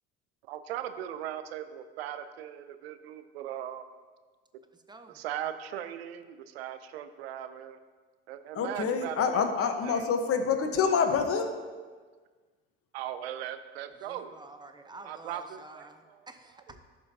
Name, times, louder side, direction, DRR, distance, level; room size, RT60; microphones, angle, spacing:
voice 1, 0.5-3.9 5.1-7.8 8.3-10.1 12.9-14.3 15.0-15.9, right 10 dB, 90° right, 11 dB, 0.5 m, -39 dB
voice 2, 4.6-5.2 13.9-16.8, right 2 dB, 15° right, 7 dB, 0.7 m, -50 dB
voice 3, 8.5-11.5, left 6 dB, 50° left, 6 dB, 1.1 m, -27 dB
13.0 x 5.5 x 2.7 m, 1.5 s
hypercardioid pair, 65°, 30 cm